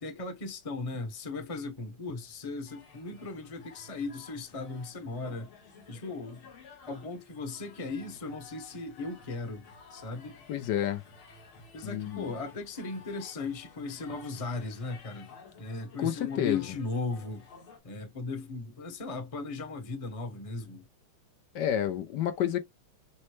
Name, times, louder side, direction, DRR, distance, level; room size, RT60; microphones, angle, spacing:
voice 1, 0.0-5.5 5.9-6.4 6.9-9.6 9.9-10.4 11.7-15.3 15.6-17.5 17.8-20.8, left 3 dB, 25° left, 0.8 m, -37 dB
sound 1, 2.7-17.8, left 5 dB, 90° left, 2.3 m, -53 dB
voice 2, 10.5-11.0 11.8-12.3 16.0-16.7 21.5-22.6, left 10 dB, 70° left, 1.1 m, -30 dB
6.3 x 2.1 x 3.0 m
omnidirectional pair, 2.2 m